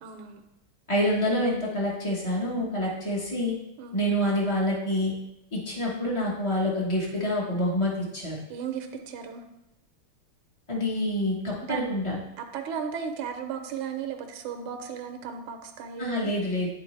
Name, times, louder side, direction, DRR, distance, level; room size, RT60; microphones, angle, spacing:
voice 1, 0.0-0.4 3.8-4.0 8.5-9.4 11.6-11.9 12.4-16.3, right 7 dB, 80° right, 5 dB, 1.5 m, -35 dB
voice 2, 0.9-3.5 3.9-5.1 5.5-8.4 10.7-12.2 16.0-16.7, left 1 dB, 40° left, -4 dB, 0.4 m, -27 dB
10.5 x 3.9 x 3.1 m, 0.89 s
omnidirectional pair, 2.3 m